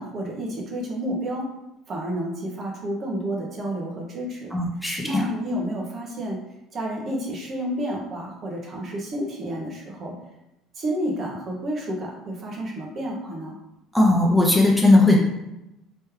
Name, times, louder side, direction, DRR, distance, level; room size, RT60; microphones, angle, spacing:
voice 1, 0.0-1.5 1.9-4.5 5.0-6.4 6.7-10.1 10.7-13.6, equal, 45° right, -1 dB, 1.0 m, -30 dB
voice 2, 4.5-5.3 13.9-15.2, left 2 dB, ahead, -2 dB, 0.8 m, -18 dB
3.3 x 3.1 x 3.2 m, 0.90 s
supercardioid pair, 80°, 0 cm